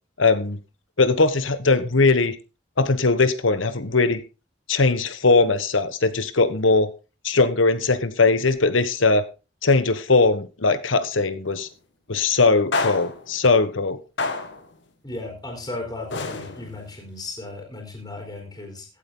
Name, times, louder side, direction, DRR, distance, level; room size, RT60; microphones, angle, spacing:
voice 1, 0.2-0.6 1.0-2.3 2.8-4.2 4.7-6.9 7.2-9.2 9.6-11.7 12.1-14.0, left 3 dB, 85° left, 12 dB, 1.3 m, -20 dB
sound 1, 11.5-11.7 12.7-13.4 14.2-14.7 16.1-16.9, left 3 dB, 65° left, 1.8 m, -28 dB
voice 2, 15.0-18.9, left 2 dB, 20° left, 1 dB, 4.0 m, -35 dB
16.0 x 8.5 x 3.9 m, 0.31 s
head